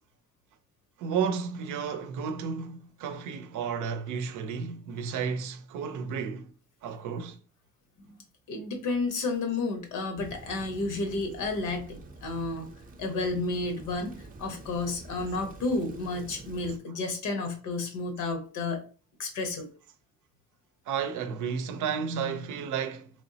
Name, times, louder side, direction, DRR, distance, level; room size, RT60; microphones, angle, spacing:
voice 1, 1.0-6.5 6.8-7.4 20.9-23.1, right 6 dB, 85° right, 0.6 m, -32 dB
voice 2, 8.5-12.7 13.0-18.8 19.2-19.7, left 3 dB, 85° left, 1.0 m, -31 dB
Rain, 10.2-16.8, right 2 dB, 30° right, 0.6 m, -47 dB
3.4 x 3.0 x 2.7 m
cardioid pair, 90°, 30 cm